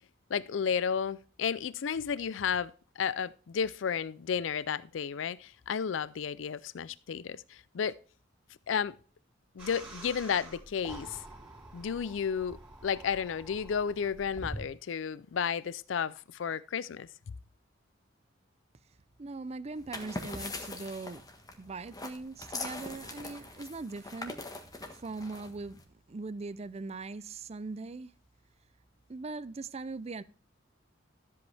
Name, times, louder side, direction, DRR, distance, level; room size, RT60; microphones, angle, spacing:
voice 1, 0.3-2.7 3.0-8.0 8.7-9.0 9.6-11.2 11.7-17.1, left 7 dB, 75° left, 0.4 m, -32 dB
sound 1, 9.6-14.7, right 1 dB, 10° right, 3.3 m, -46 dB
voice 2, 19.2-21.2 21.6-24.4 24.9-25.8 26.1-28.1 29.1-30.2, right 3 dB, 35° right, 0.5 m, -40 dB
sound 2, 19.8-25.8, left 2 dB, 20° left, 1.3 m, -42 dB
13.0 x 7.9 x 3.4 m
head